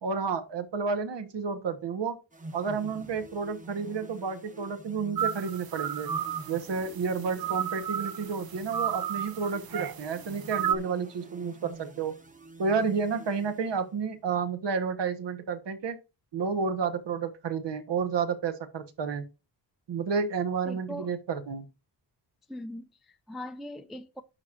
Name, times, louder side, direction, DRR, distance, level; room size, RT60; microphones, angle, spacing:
voice 1, 0.0-2.1 2.5-6.1 6.5-12.1 12.6-16.0 16.3-19.2 19.9-21.7, right 5 dB, 80° right, 1.3 m, -31 dB
sound 1, 2.3-14.2, right 2 dB, 20° right, 1.0 m, -47 dB
sound 2, 5.2-10.8, right 9 dB, 55° right, 0.6 m, -33 dB
voice 2, 20.7-21.1 22.5-24.2, equal, ahead, 0.4 m, -40 dB
10.5 x 6.1 x 2.6 m
wide cardioid pair, 120°, 42 cm